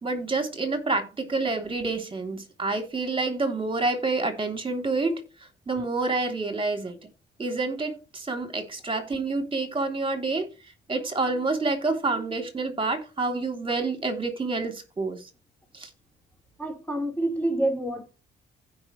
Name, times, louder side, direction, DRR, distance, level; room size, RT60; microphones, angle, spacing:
voice 1, 0.0-5.1 5.7-7.0 7.4-10.5 10.9-15.2 15.7-15.9, right 3 dB, 25° right, 3.1 m, -28 dB
voice 2, 16.6-18.0, right 1 dB, 5° left, 4.1 m, -27 dB
15.5 x 5.7 x 3.2 m
cardioid pair, 90°, 20 cm